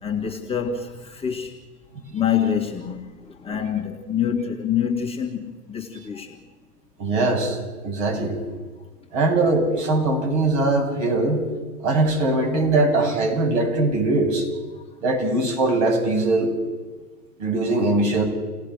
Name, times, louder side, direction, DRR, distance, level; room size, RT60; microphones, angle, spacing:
voice 1, 0.0-1.5 2.1-6.4, left 8 dB, 10° left, 1.9 m, -26 dB
voice 2, 7.0-7.6 7.8-8.4 9.1-11.5 11.8-14.5 15.0-16.5 17.4-18.2, right 2 dB, 50° right, 8.0 m, -21 dB
30.0 x 18.0 x 6.5 m
hypercardioid pair, 130°, 48 cm